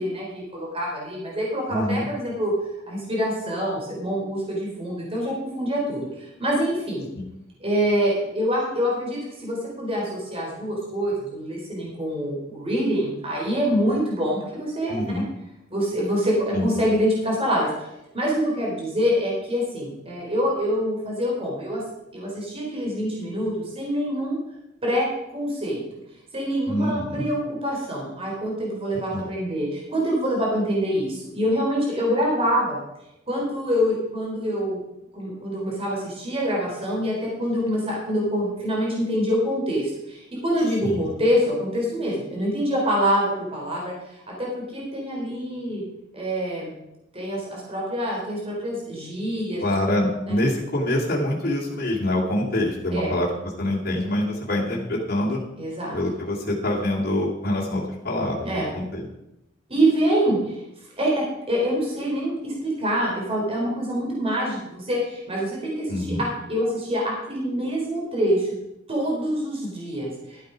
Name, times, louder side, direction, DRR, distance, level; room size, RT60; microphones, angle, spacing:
voice 1, 0.0-2.5 2.9-7.1 7.6-15.2 15.7-17.9 18.1-21.8 22.1-24.4 24.8-25.8 26.3-32.8 33.3-34.8 35.1-45.8 46.1-46.7 47.1-49.6 52.9-53.1 55.6-56.0 58.4-58.7 59.7-60.6 61.0-68.5 68.9-70.4, equal, 30° right, -3 dB, 4.0 m, -25 dB
voice 2, 1.7-2.1 7.1-7.2 14.9-15.2 16.5-16.7 26.7-27.3 29.1-29.2 40.8-41.1 49.6-53.3 53.6-55.4 55.9-59.1 65.9-66.2, left 1 dB, 50° left, -4 dB, 2.6 m, -25 dB
13.0 x 8.2 x 5.1 m, 0.88 s
head